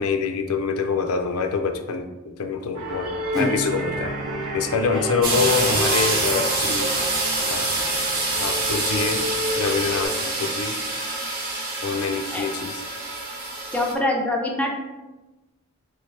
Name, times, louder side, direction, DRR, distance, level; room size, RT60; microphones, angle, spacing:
voice 1, 0.0-3.1 3.3-4.1 4.5-6.9 7.5-7.9 8.4-9.2 9.5-10.8 11.8-12.8, left 5 dB, 85° left, 6 dB, 0.4 m, -26 dB
sound 1, 2.7-10.1, equal, 80° right, 1.0 m, -30 dB
Acoustic guitar / Strum, 3.3-8.8, equal, 20° right, 0.9 m, -35 dB
sound 2, 5.2-13.9, right 2 dB, 45° right, 0.8 m, -26 dB
voice 2, 13.7-14.8, left 1 dB, 5° left, 0 dB, 0.4 m, -24 dB
3.2 x 3.2 x 3.1 m, 1.1 s
head